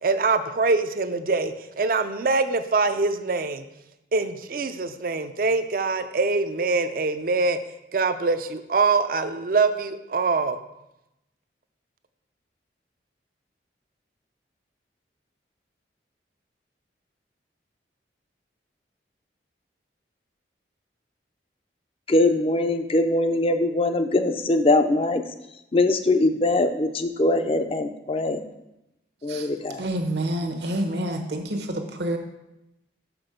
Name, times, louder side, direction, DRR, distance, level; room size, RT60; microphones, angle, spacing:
voice 1, 0.0-3.6 4.1-7.6 7.9-10.6, right 3 dB, 50° right, 10 dB, 0.5 m, -24 dB
voice 2, 22.1-25.2 25.7-28.4 29.2-29.9, left 2 dB, 30° left, 8 dB, 0.4 m, -22 dB
voice 3, 29.8-32.2, right 1 dB, 70° right, 4 dB, 1.0 m, -28 dB
6.3 x 6.0 x 5.1 m, 0.91 s
head